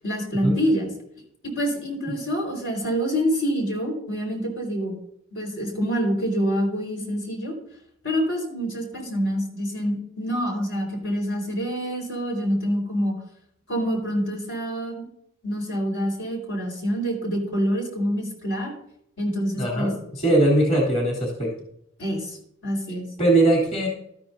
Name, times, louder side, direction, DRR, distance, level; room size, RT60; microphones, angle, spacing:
voice 1, 0.0-0.9 1.4-4.9 5.3-7.5 8.0-13.1 13.7-15.1 15.4-18.7 19.2-19.9 22.0-23.1, equal, 65° left, 1 dB, 4.4 m, -26 dB
voice 2, 19.6-21.5 23.2-23.9, right 1 dB, 35° left, -3 dB, 3.4 m, -21 dB
13.5 x 13.0 x 2.7 m, 0.73 s
head